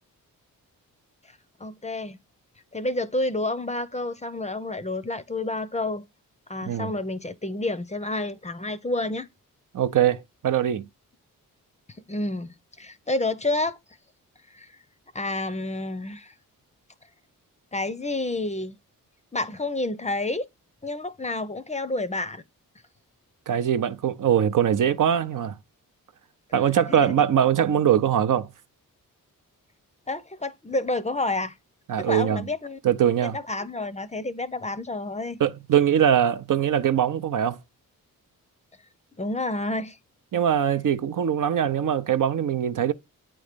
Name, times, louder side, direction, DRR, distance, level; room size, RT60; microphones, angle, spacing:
voice 1, 1.6-2.2 2.7-6.1 6.5-9.3 12.1-13.8 14.5-14.7 15.1-16.3 17.7-18.8 19.3-20.5 20.8-22.4 26.9-27.1 30.1-31.5 32.0-32.8 33.2-35.4 39.2-40.0, left 2 dB, 20° left, 0.6 m, -29 dB
voice 2, 9.7-10.9 23.5-25.6 26.5-28.5 31.9-32.5 32.8-33.4 35.4-37.6 40.3-42.9, right 9 dB, 60° right, 0.7 m, -22 dB
8.6 x 3.1 x 5.1 m
cardioid pair, 60°, 36 cm